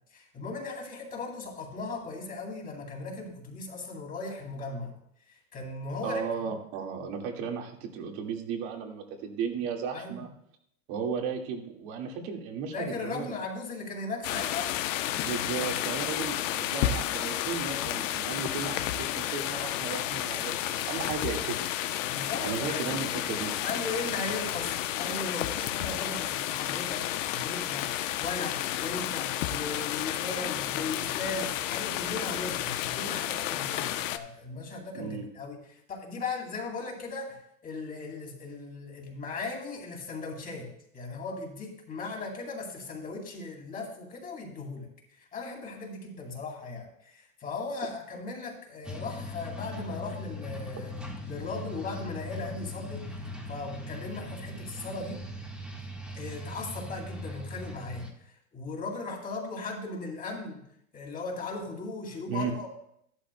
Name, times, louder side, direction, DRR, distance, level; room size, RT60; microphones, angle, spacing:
voice 1, 0.1-4.9 5.3-6.2 9.9-10.2 12.7-14.7 22.1-23.0 23.6-44.9 45.2-50.9 51.2-53.1 53.5-55.2 56.1-60.6 60.9-62.7, left 3 dB, 20° left, 0 dB, 2.5 m, -37 dB
voice 2, 6.0-10.3 10.9-13.4 15.2-21.6 22.4-23.6 34.9-35.3 62.3-62.6, right 6 dB, 50° right, 2 dB, 2.0 m, -35 dB
sound 1, 14.2-34.2, left 12 dB, 60° left, 0.8 m, -31 dB
sound 2, 48.8-58.1, left 1 dB, ahead, 1.5 m, -40 dB
13.5 x 11.5 x 2.2 m, 0.70 s
supercardioid pair, 135°, 42 cm